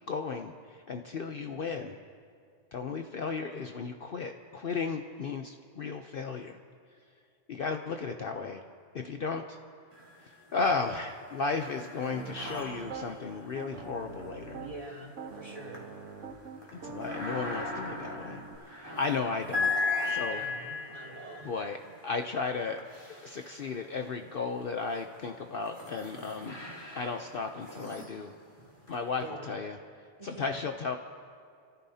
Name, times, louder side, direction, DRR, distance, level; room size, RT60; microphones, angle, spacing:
voice 1, 0.1-0.5 0.9-2.0 2.7-6.6 7.5-8.6 8.9-9.6 10.5-14.6 16.7-18.4 18.7-19.7 20.1-20.4 21.4-21.8 22.0-22.8 23.2-26.6 26.9-28.3 28.9-29.8 30.2-31.0, left 4 dB, 55° left, 5 dB, 0.8 m, -34 dB
sound 1, 9.9-10.6 10.9-24.1 24.8-29.2, left 3 dB, 20° left, 2.9 m, -38 dB
Piano, 12.1-13.1 13.5-14.8 15.2-18.6, right 5 dB, 80° right, 1.3 m, -44 dB
voice 2, 14.6-15.9 20.3-21.5 29.2-29.6 30.2-30.4, right 2 dB, 30° right, -3 dB, 3.0 m, -45 dB
29.5 x 14.5 x 2.8 m, 2.3 s
omnidirectional pair, 1.3 m